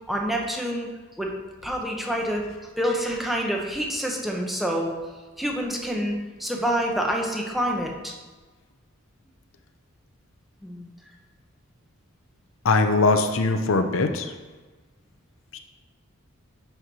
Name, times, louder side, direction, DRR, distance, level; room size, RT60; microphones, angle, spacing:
voice 1, 0.1-0.9 1.2-1.3 1.6-2.4 2.8-4.9 5.4-8.1 10.6-10.9, equal, ahead, -1 dB, 1.0 m, -27 dB
voice 2, 12.6-14.3 15.5-15.6, left 3 dB, 75° left, 6 dB, 0.7 m, -21 dB
10.5 x 4.5 x 4.8 m, 1.3 s
head